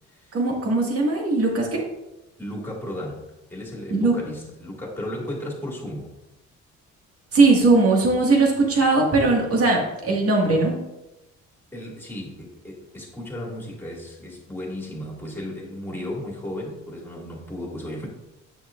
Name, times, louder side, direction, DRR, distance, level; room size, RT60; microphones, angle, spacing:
voice 1, 0.3-1.8 3.9-4.1 7.3-10.8, right 3 dB, 50° right, -1 dB, 1.9 m, -19 dB
voice 2, 2.4-6.1 11.7-18.1, left 1 dB, 5° left, -3 dB, 2.3 m, -35 dB
9.2 x 6.0 x 2.5 m, 0.97 s
cardioid pair, 90°, 30 cm